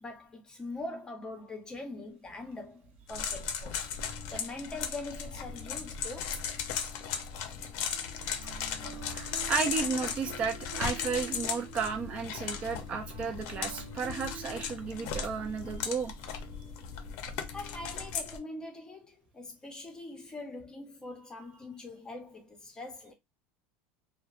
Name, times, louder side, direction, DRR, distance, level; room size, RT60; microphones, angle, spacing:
voice 1, 0.0-3.9 4.3-6.4 17.5-23.1, left 2 dB, 15° left, 0.7 m, -43 dB
sound 1, 1.7-1.8 2.5-2.6 3.4-4.6 4.8-5.1 5.4-7.0 7.3-14.7, right 10 dB, 55° right, 0.8 m, -49 dB
sound 2, 3.1-18.4, left 7 dB, 55° left, 0.5 m, -37 dB
voice 2, 9.1-16.1, right 5 dB, 25° right, 0.3 m, -33 dB
2.8 x 2.0 x 2.4 m
supercardioid pair, 155°, 5 cm